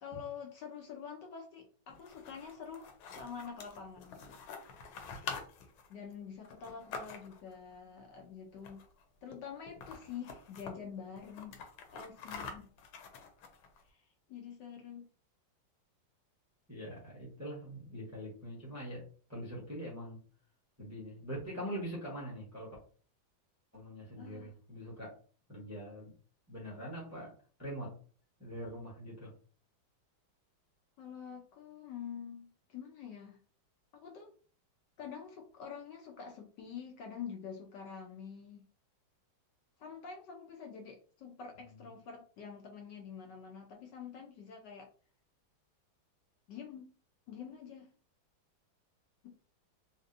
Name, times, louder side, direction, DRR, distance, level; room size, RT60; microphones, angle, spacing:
voice 1, 0.0-4.4 5.9-8.8 9.2-12.7 13.8-15.1 24.2-24.5 31.0-33.4 33.9-34.3 35.0-38.6 39.8-44.9 46.5-46.9 47.3-47.9, left 7 dB, 70° left, 2 dB, 1.1 m, -47 dB
sound 1, 1.9-7.5 8.6-9.0 9.3-9.4 9.7-10.7 11.2-13.8, left 5 dB, 90° left, 1.5 m, -46 dB
voice 2, 16.7-19.0 19.3-20.2 20.8-22.8 23.7-25.2 25.5-26.1 26.5-28.0 28.4-29.3 41.7-41.9, equal, 15° right, -4 dB, 0.7 m, -43 dB
3.3 x 2.8 x 2.5 m, 0.41 s
omnidirectional pair, 2.2 m